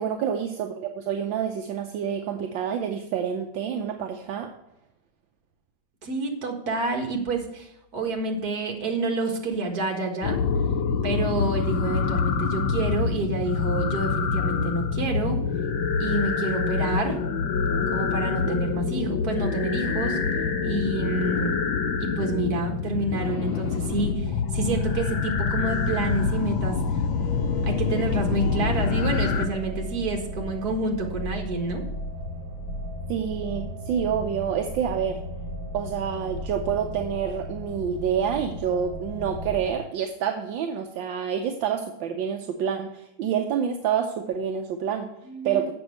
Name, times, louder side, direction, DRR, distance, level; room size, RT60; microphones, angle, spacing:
voice 1, 0.0-4.5 18.5-18.7 33.1-35.2 35.7-45.1 45.4-45.7, right 8 dB, 75° right, 4 dB, 1.4 m, -28 dB
voice 2, 6.0-10.4 11.0-15.4 16.0-17.2 17.9-20.2 20.6-21.5 22.0-26.8 27.6-31.8 45.2-45.7, right 2 dB, 50° right, 2 dB, 2.1 m, -28 dB
sound 1, 10.2-29.5, left 5 dB, 75° left, 1.6 m, -26 dB
sound 2, 23.9-39.7, equal, 40° left, 3.8 m, -36 dB
7.9 x 6.2 x 7.8 m, 0.83 s
omnidirectional pair, 2.2 m